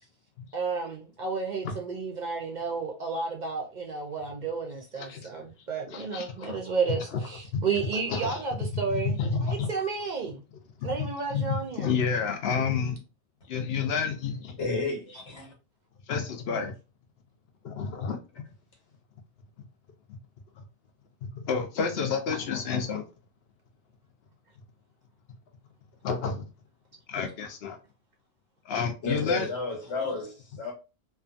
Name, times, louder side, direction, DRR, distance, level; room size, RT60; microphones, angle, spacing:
voice 1, 0.5-10.4 10.8-11.9, right 5 dB, 55° right, 0.5 m, -32 dB
voice 2, 5.0-5.3 5.9-6.7 7.1-7.2 7.5-7.6 8.1-8.4 8.7-9.7 10.8-13.0 13.5-14.6 16.1-16.7 17.6-18.2 20.1-20.2 21.2-23.1 26.0-26.4 27.1-27.8 28.6-29.5, left 5 dB, 65° left, 0.8 m, -30 dB
voice 3, 14.6-15.5 29.0-30.7, left 3 dB, 90° left, 1.3 m, -31 dB
2.6 x 2.4 x 2.4 m
omnidirectional pair, 1.1 m